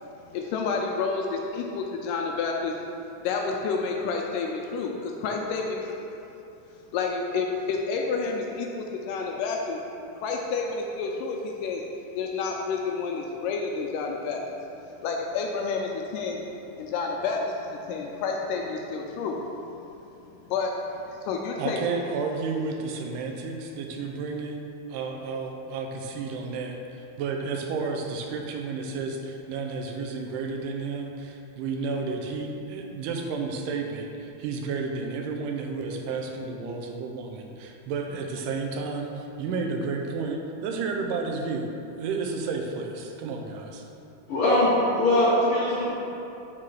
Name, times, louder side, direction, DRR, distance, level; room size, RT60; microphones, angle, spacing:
voice 1, 0.0-2.7 3.2-5.8 6.9-9.8 10.2-11.8 12.2-14.6 15.0-16.4 16.8-19.7 20.2-20.3 20.5-20.7 21.1-21.8, left 4 dB, 80° left, 1 dB, 2.1 m, -29 dB
voice 2, 21.6-43.8, right 4 dB, 80° right, 3 dB, 2.2 m, -32 dB
voice 3, 44.3-45.9, left 1 dB, 65° left, -9 dB, 1.4 m, -21 dB
6.5 x 3.7 x 6.3 m, 2.8 s
omnidirectional pair, 3.9 m